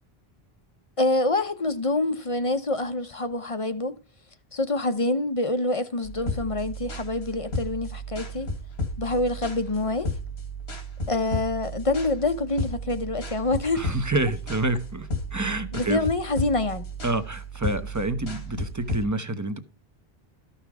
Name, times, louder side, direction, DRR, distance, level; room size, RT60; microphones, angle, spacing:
voice 1, 1.0-3.9 4.5-8.5 9.0-10.1 11.1-13.9 15.7-16.9, left 2 dB, 35° left, 0.8 m, -26 dB
sound 1, 6.0-19.1, equal, 90° left, 2.0 m, -34 dB
voice 2, 13.7-16.0 17.0-19.6, right 2 dB, 20° right, 0.9 m, -28 dB
13.5 x 5.7 x 4.7 m
omnidirectional pair, 1.0 m